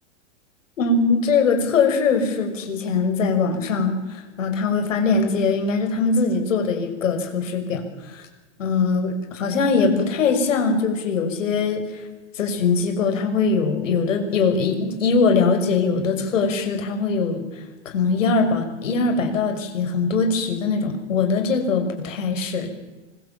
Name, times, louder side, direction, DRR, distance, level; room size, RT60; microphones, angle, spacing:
voice 1, 0.8-7.8 8.1-8.3 8.6-12.0 12.3-22.7, left 4 dB, 90° left, 6 dB, 6.0 m, -22 dB
26.0 x 21.0 x 7.4 m, 1.2 s
supercardioid pair, 165°, 37 cm